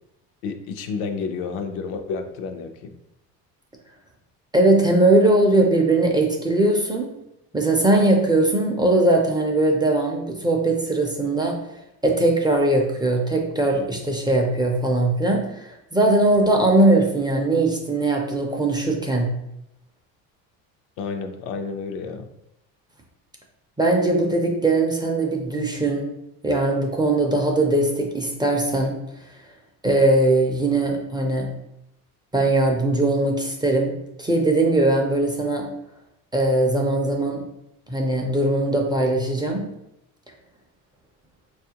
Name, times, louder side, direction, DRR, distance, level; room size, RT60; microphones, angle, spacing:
voice 1, 0.4-2.9 21.0-22.3, left 5 dB, 85° left, 6 dB, 0.6 m, -30 dB
voice 2, 4.5-7.1 7.5-11.6 12.0-19.3 23.8-26.1 26.4-28.9 29.8-31.5 32.3-33.9 34.2-35.7 36.3-37.4 37.9-39.7, right 2 dB, 10° right, 1 dB, 0.4 m, -20 dB
4.2 x 2.4 x 2.8 m, 0.83 s
cardioid pair, 120°, 37 cm